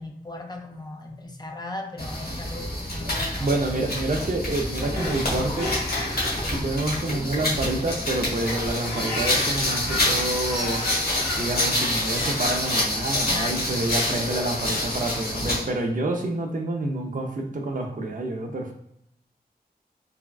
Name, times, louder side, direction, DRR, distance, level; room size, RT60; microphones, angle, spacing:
voice 1, 0.0-3.5 13.3-13.7, left 2 dB, 25° left, 3 dB, 0.4 m, -37 dB
sound 1, 2.0-15.7, left 1 dB, 70° left, 1.3 m, -27 dB
voice 2, 3.4-5.7 6.4-10.8 11.3-18.7, right 2 dB, 55° right, 2 dB, 0.5 m, -28 dB
sound 2, 4.8-15.6, left 2 dB, 90° left, 1.0 m, -35 dB
3.4 x 2.2 x 2.3 m, 0.77 s
wide cardioid pair, 70°, 16 cm